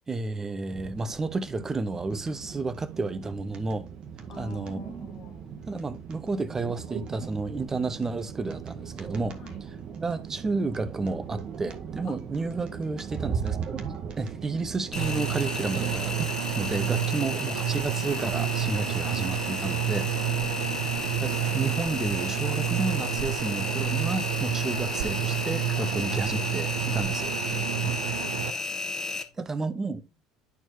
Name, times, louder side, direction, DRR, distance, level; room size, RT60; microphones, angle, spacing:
voice 1, 0.1-3.9 4.3-4.9 5.7-20.1 20.8-27.3 27.8-27.9 29.4-30.0, right 3 dB, 20° right, 0.9 m, -31 dB
sound 1, 0.7-16.3, right 7 dB, 45° right, 1.3 m, -38 dB
voice 2, 4.3-5.5 9.4-9.6 12.0-13.0 16.4-16.7 20.1-21.0 25.0-25.1 25.8-25.9 26.8-27.1 27.5-29.1, left 8 dB, 55° left, 1.6 m, -48 dB
Engine, 14.9-29.2, left 4 dB, 30° left, 1.4 m, -34 dB
sound 2, 15.0-28.5, right 11 dB, 70° right, 0.6 m, -30 dB
11.0 x 4.5 x 2.8 m
figure-of-eight pair, 65°, 2 cm